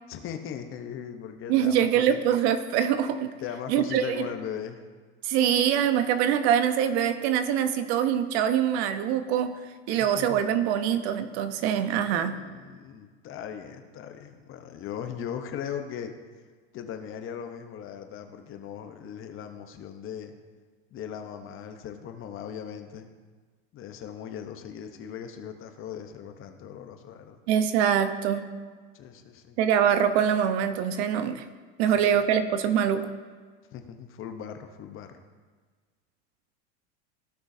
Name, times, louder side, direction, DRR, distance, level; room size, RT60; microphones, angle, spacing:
voice 1, 0.1-2.2 3.4-4.8 9.9-10.4 12.1-16.1 16.7-20.3 20.9-23.1 23.7-27.4 28.9-29.6 31.9-32.2 33.7-35.1, left 8 dB, 40° left, 6 dB, 0.9 m, -39 dB
voice 2, 1.5-3.3 3.7-4.3 5.2-9.5 9.9-12.4 27.5-28.5 29.6-31.4 31.8-33.1, right 9 dB, 65° right, 10 dB, 0.9 m, -24 dB
16.0 x 6.2 x 2.7 m, 1.5 s
supercardioid pair, 125°, 34 cm